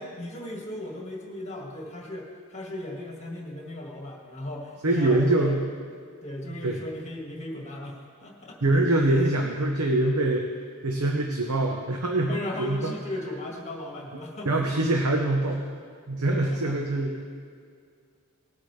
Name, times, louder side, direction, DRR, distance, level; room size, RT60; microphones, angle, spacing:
voice 1, 0.0-5.6 6.2-8.8 12.3-14.7 16.3-16.8, left 1 dB, 30° left, -1 dB, 1.9 m, -37 dB
voice 2, 4.8-5.6 6.5-6.8 8.6-10.4 10.8-13.0 14.4-15.7 16.1-17.2, right 2 dB, 85° right, 2 dB, 0.9 m, -24 dB
19.5 x 8.3 x 3.3 m, 2.2 s
head